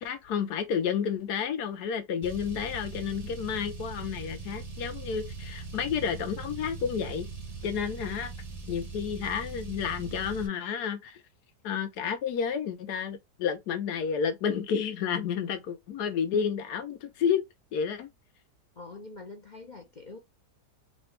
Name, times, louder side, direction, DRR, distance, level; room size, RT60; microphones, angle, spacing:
voice 1, 0.0-7.3 7.6-8.3 8.7-11.2 11.6-17.4 17.7-18.1, left 7 dB, 70° left, 1.3 m, -31 dB
Car, 2.2-10.5, right 4 dB, 35° right, 0.6 m, -40 dB
voice 2, 18.8-20.2, left 3 dB, 45° left, 0.6 m, -44 dB
4.2 x 2.6 x 3.2 m
omnidirectional pair, 1.9 m